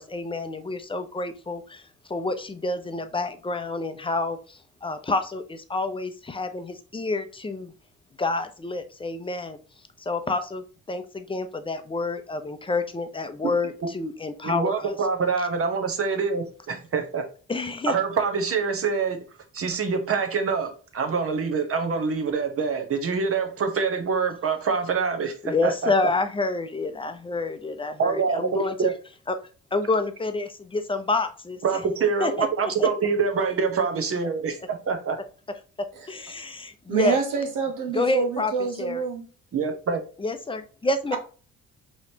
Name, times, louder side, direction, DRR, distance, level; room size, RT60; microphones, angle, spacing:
voice 1, 0.0-1.8 2.1-7.7 8.2-9.6 10.0-15.0 17.5-17.9 25.4-28.9 29.3-29.4 29.7-31.6 32.2-32.5 32.8-32.9 35.8-37.2 37.9-38.5 38.8-39.1 40.2-41.2, left 3 dB, 15° left, 0.6 m, -28 dB
voice 2, 14.4-17.2 17.9-19.3 19.5-25.9 28.0-28.9 31.6-35.2 39.5-40.0, right 5 dB, 50° right, 1.0 m, -25 dB
voice 3, 36.9-39.3, right 5 dB, 85° right, 1.2 m, -27 dB
4.9 x 3.1 x 2.8 m
cardioid pair, 90°, 30 cm